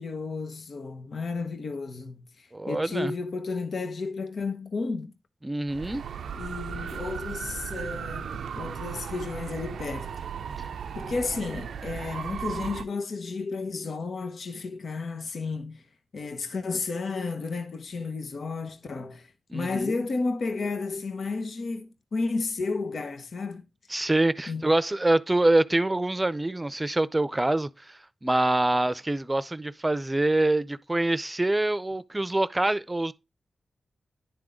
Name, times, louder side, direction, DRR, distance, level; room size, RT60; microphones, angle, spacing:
voice 1, 0.0-5.1 6.4-10.2 10.9-15.8 16.1-23.6 24.5-24.7, left 4 dB, 70° left, 0.9 m, -32 dB
voice 2, 2.5-3.1 5.4-6.0 19.5-20.0 23.9-33.1, right 2 dB, 25° right, 0.6 m, -25 dB
sound 1, 5.7-12.8, right 7 dB, 85° right, 0.4 m, -36 dB
10.5 x 3.6 x 5.0 m
supercardioid pair, 40°, 0 cm